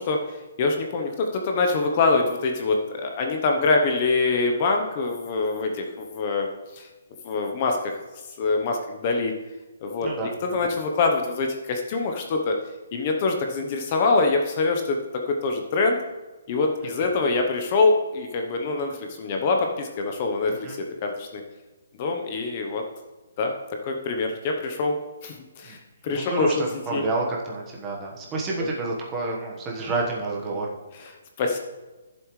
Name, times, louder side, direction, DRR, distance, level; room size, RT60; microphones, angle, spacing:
voice 1, 0.0-6.5 6.7-6.9 7.2-8.0 8.4-9.3 9.8-12.5 12.9-15.0 15.2-16.0 16.5-21.4 22.0-22.8 23.4-23.5 23.8-24.9 25.2-26.6 26.9-27.0 28.6-28.7 30.9-31.1 31.4-31.6, left 3 dB, 30° left, 3 dB, 0.8 m, -24 dB
voice 2, 10.0-10.5 20.6-20.8 25.6-25.8 26.1-30.7, right 3 dB, 15° right, -2 dB, 1.2 m, -29 dB
13.5 x 7.4 x 3.1 m, 1.2 s
hypercardioid pair, 175°, 0 cm